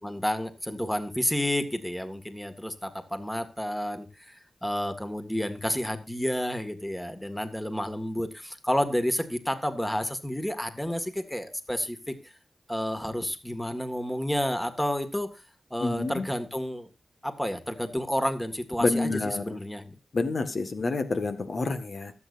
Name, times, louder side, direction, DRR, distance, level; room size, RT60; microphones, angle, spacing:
voice 1, 0.0-4.1 4.6-12.1 12.7-15.3 15.7-16.9 17.2-19.9, equal, 5° left, 8 dB, 1.9 m, -30 dB
voice 2, 15.8-16.3 18.8-19.6 20.1-22.1, left 3 dB, 55° left, 8 dB, 1.7 m, -28 dB
24.0 x 8.3 x 2.6 m, 0.26 s
wide cardioid pair, 80°, 0 cm